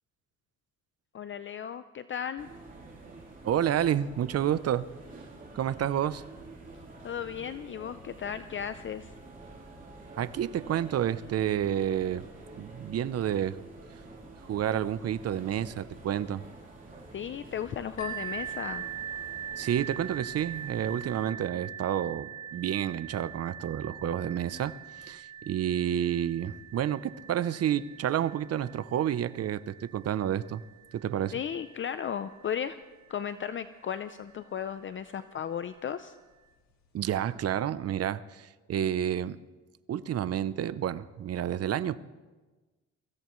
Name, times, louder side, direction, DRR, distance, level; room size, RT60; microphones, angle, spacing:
voice 1, 1.1-2.5 7.0-9.1 17.1-18.8 31.3-32.8 33.1-36.2, left 8 dB, 40° left, 12 dB, 0.6 m, -35 dB
sound 1, 2.4-21.3, right 2 dB, 30° right, 3.7 m, -49 dB
voice 2, 3.4-4.9 5.5-6.2 10.2-12.3 12.5-13.6 14.5-16.4 19.6-30.6 30.9-31.4 36.9-39.4 39.9-42.0, right 10 dB, 55° right, 15 dB, 0.7 m, -30 dB
sound 2, 18.0-33.5 34.3-34.4 34.9-35.0, right 9 dB, 65° left, 1.9 m, -43 dB
24.0 x 16.0 x 3.1 m, 1.2 s
cardioid pair, 90°, 30 cm